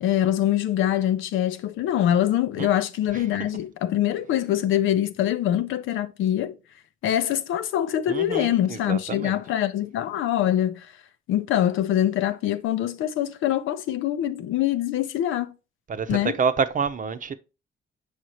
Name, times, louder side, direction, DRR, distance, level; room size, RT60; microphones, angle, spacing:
voice 1, 0.0-6.5 7.0-10.9 11.3-15.5 16.1-16.3, left 11 dB, 85° left, 0.7 m, -24 dB
voice 2, 8.1-9.4 15.9-17.3, right 5 dB, 40° right, 0.8 m, -28 dB
6.5 x 5.2 x 3.0 m
cardioid pair, 90°, 20 cm